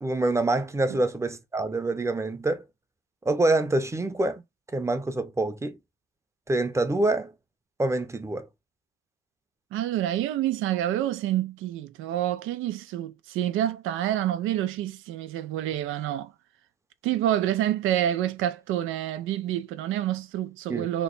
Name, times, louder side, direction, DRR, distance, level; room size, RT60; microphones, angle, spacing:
voice 1, 0.0-2.6 3.2-4.4 4.7-5.8 6.5-7.3 7.8-8.5 20.7-20.9, right 2 dB, 15° right, 0.7 m, -26 dB
voice 2, 9.7-16.3 17.0-21.0, right 12 dB, 90° right, 0.5 m, -28 dB
3.1 x 2.2 x 3.8 m
cardioid pair, 90°, 20 cm